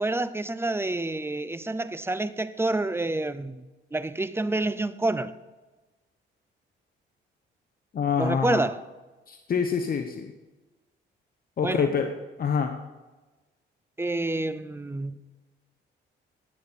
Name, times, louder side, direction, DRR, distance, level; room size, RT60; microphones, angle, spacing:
voice 1, 0.0-3.6 3.9-5.3 8.2-8.8 11.6-11.9 14.0-15.3, right 2 dB, 10° right, 0.6 m, -28 dB
voice 2, 7.9-8.6 9.3-10.3 11.6-12.1 12.4-12.7, left 6 dB, 45° left, 1.0 m, -26 dB
17.5 x 8.6 x 4.2 m
cardioid pair, 90°, 20 cm